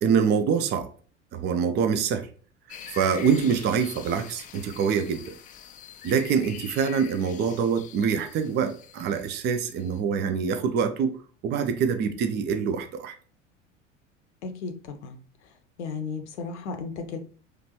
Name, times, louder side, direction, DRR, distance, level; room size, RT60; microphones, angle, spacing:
voice 1, 0.0-0.9 1.3-2.3 2.7-5.4 6.0-11.2 11.4-13.1, right 6 dB, 30° right, 0.5 m, -25 dB
sound 1, 2.7-10.0, left 8 dB, 20° left, 0.4 m, -45 dB
voice 2, 14.4-15.2 15.8-17.2, left 5 dB, 65° left, 0.7 m, -34 dB
5.0 x 3.1 x 3.0 m
figure-of-eight pair, 70°, 38 cm